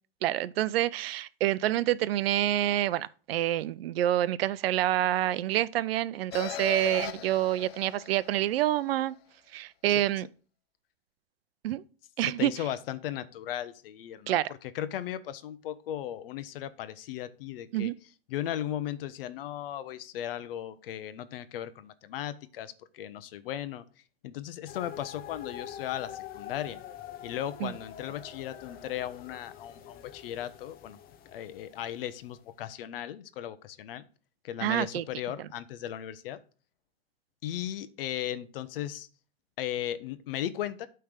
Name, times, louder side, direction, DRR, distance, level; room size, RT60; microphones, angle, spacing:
voice 1, 0.2-9.1 9.5-10.3 11.6-11.8 12.2-12.5 14.3-14.5 17.7-17.9 27.6-27.7 34.6-35.0, right 13 dB, 75° right, 0.5 m, -27 dB
sound 1, 6.3-8.8, left 13 dB, 85° left, 0.5 m, -38 dB
voice 2, 12.2-14.4 14.7-17.9 18.3-23.8 24.2-26.8 27.2-31.0 31.3-34.1 34.4-36.4 37.4-39.1 39.6-40.9, left 11 dB, 70° left, 0.9 m, -36 dB
sound 2, 24.7-32.5, left 10 dB, 30° left, 0.8 m, -46 dB
8.6 x 3.4 x 6.5 m
hypercardioid pair, 120°, 30 cm